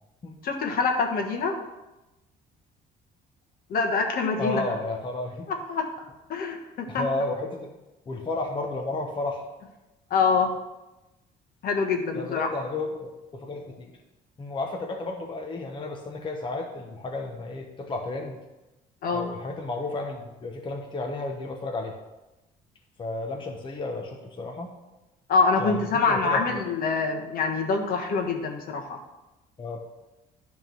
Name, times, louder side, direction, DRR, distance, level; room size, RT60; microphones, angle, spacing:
voice 1, 0.4-1.5 3.7-4.6 5.7-5.8 6.3-7.1 10.1-10.5 11.6-12.5 19.0-19.3 25.3-29.0, left 4 dB, 60° left, 2 dB, 1.4 m, -25 dB
voice 2, 4.4-5.5 6.9-7.7 8.1-9.4 12.1-13.9 14.4-18.4 19.1-21.9 23.0-24.7 25.6-26.6 29.6-29.8, left 2 dB, 30° left, 2 dB, 1.0 m, -32 dB
10.0 x 3.7 x 6.2 m, 1.0 s
cardioid pair, 110°, 17 cm